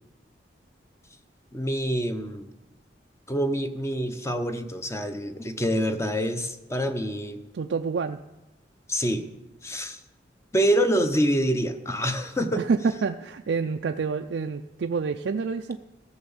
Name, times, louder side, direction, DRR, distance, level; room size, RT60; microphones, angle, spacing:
voice 1, 1.5-2.5 3.3-7.4 8.9-9.3 9.6-10.0 10.5-12.6, equal, 15° left, 8 dB, 0.8 m, -26 dB
voice 2, 7.5-8.2 12.6-15.8, right 5 dB, 80° right, 6 dB, 0.4 m, -27 dB
13.5 x 7.0 x 7.1 m, 0.98 s
head